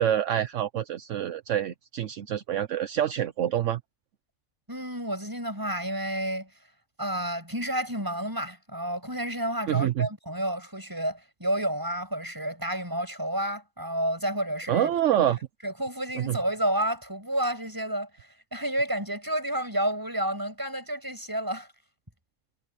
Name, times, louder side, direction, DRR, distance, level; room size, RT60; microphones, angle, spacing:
voice 1, 0.0-3.8 9.7-10.1 14.7-15.4 16.1-16.4, right 11 dB, 70° right, 1.1 m, -26 dB
voice 2, 4.7-6.5 7.0-14.9 15.3-15.4 15.6-21.7, right 1 dB, 15° right, 7.4 m, -30 dB
omnidirectional pair, 1.4 m